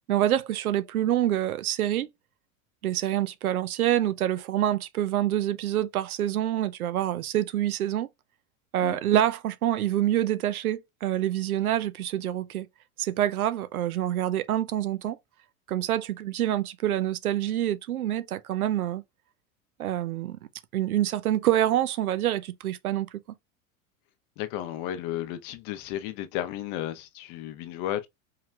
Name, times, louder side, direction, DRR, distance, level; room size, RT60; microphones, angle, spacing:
voice 1, 0.1-2.1 2.8-8.1 8.7-12.7 13.0-15.2 15.7-19.0 19.8-20.4 20.7-23.1, right 12 dB, 85° right, 0.6 m, -26 dB
voice 2, 24.4-28.1, left 12 dB, 50° left, 0.8 m, -33 dB
4.8 x 3.1 x 2.3 m
hypercardioid pair, 90°, 42 cm